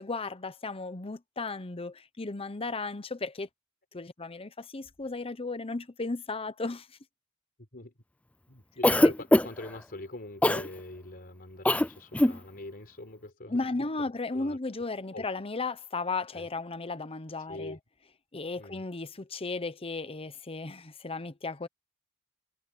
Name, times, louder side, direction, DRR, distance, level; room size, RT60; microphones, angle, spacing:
voice 1, 0.0-3.5 3.9-6.9 9.0-9.1 13.5-17.8 18.3-21.7, left 3 dB, 30° left, 0.9 m, -35 dB
voice 2, 8.5-13.9 14.3-14.6 15.0-15.3 16.3-16.5 17.4-17.8 18.6-18.8, left 2 dB, 50° left, 4.6 m, -43 dB
Cough, 8.8-9.7 10.4-10.7 11.6-11.9 12.1-12.4, left 1 dB, 5° left, 0.4 m, -21 dB
head